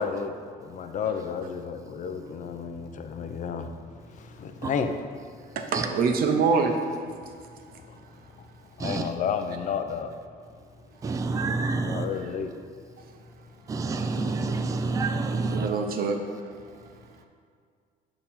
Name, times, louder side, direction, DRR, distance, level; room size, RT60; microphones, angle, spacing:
voice 1, 0.0-3.7 4.2-4.9 8.8-10.1 11.8-12.5, left 6 dB, 50° left, 7 dB, 0.5 m, -31 dB
voice 2, 5.6-6.7 15.4-16.5, right 5 dB, 60° right, 4 dB, 0.7 m, -25 dB
voice 3, 8.8-9.1 11.0-12.1 13.7-15.7, right 3 dB, 20° right, 6 dB, 0.3 m, -28 dB
6.5 x 2.9 x 5.5 m, 2.1 s
cardioid pair, 110°, 17 cm